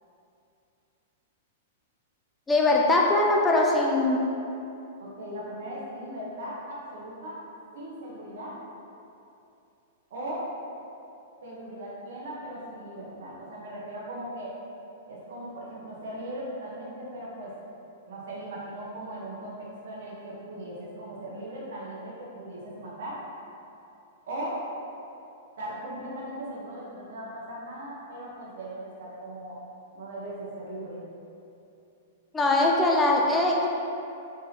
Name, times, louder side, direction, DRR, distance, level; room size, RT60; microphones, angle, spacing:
voice 1, 2.5-4.2 32.3-33.7, left 2 dB, 10° left, -1 dB, 0.3 m, -21 dB
voice 2, 5.0-7.4 7.7-8.6 10.1-10.5 11.4-14.5 15.1-17.5 18.1-23.2 24.3-24.6 25.6-29.6 29.9-31.0, right 1 dB, 70° right, -5 dB, 0.9 m, -38 dB
4.1 x 3.6 x 2.8 m, 2.7 s
supercardioid pair, 165°, 0 cm